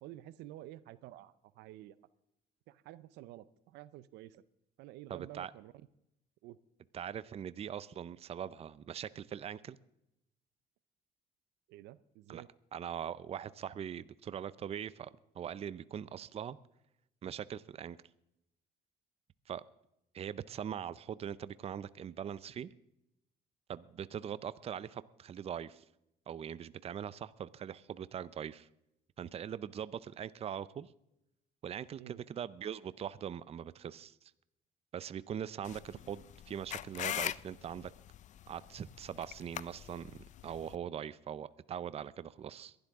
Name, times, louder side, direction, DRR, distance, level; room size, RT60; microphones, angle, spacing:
voice 1, 0.0-1.9 2.7-4.4 4.8-5.7 6.4-6.6 11.7-12.5 32.0-32.2, right 15 dB, 90° right, 17 dB, 0.6 m, -50 dB
voice 2, 5.1-5.5 6.9-9.8 12.3-12.4 12.7-15.1 15.3-16.6 17.2-18.0 19.5-19.6 20.1-22.7 23.7-25.8 26.3-28.7 29.2-30.9 31.6-34.2 34.9-37.9 38.5-42.7, right 9 dB, 35° right, 17 dB, 0.5 m, -41 dB
sound 1, 35.6-40.8, left 11 dB, 45° left, 0.4 m, -42 dB
22.0 x 11.5 x 3.6 m, 0.83 s
cardioid pair, 110°, 17 cm